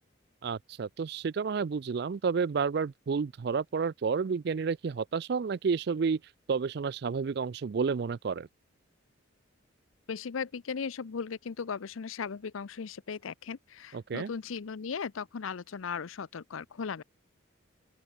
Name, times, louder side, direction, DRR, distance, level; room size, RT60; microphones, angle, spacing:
voice 1, 0.4-6.2 6.5-8.5 13.9-14.3, right 5 dB, 50° right, 0.4 m, -30 dB
voice 2, 10.1-17.0, left 6 dB, 80° left, 0.6 m, -37 dB
open air
head